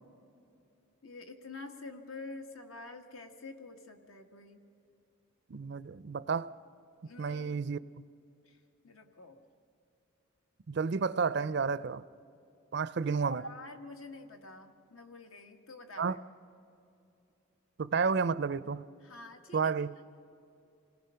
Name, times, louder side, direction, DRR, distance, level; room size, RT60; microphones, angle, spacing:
voice 1, 1.0-4.6 7.1-7.7 8.4-8.6 8.8-9.4 13.2-16.2 19.0-19.9, left 2 dB, 80° left, 1.5 m, -47 dB
voice 2, 5.5-6.5 7.2-7.8 10.7-12.0 12.7-13.4 16.0-16.2 17.8-18.9 19.5-20.0, right 5 dB, 50° right, 0.4 m, -31 dB
26.5 x 19.0 x 5.7 m
head